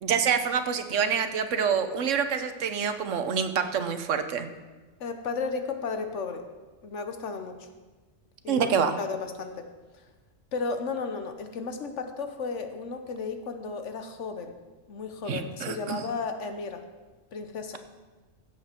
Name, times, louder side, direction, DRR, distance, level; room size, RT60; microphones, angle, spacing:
voice 1, 0.0-4.5 8.5-8.9 15.3-16.0, right 7 dB, 70° right, 9 dB, 1.1 m, -27 dB
voice 2, 5.0-6.4 6.8-7.7 8.4-8.7 9.0-9.7 10.5-14.6 14.9-16.8 17.3-17.8, left 4 dB, 65° left, 7 dB, 1.2 m, -34 dB
16.0 x 7.7 x 4.4 m, 1.2 s
omnidirectional pair, 1.3 m